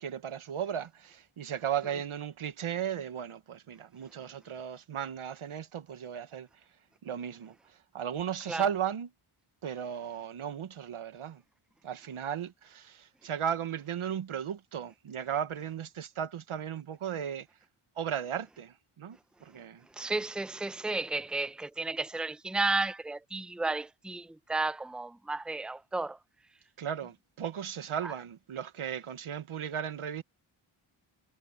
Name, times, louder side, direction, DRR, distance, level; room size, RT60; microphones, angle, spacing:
voice 1, 0.0-6.5 7.0-9.1 9.6-11.4 11.8-17.5 18.0-19.9 26.8-30.2, right 8 dB, 75° right, 1.3 m, -36 dB
voice 2, 19.9-26.2 28.0-28.1, right 3 dB, ahead, 0.7 m, -33 dB
wide cardioid pair, 95°, 49 cm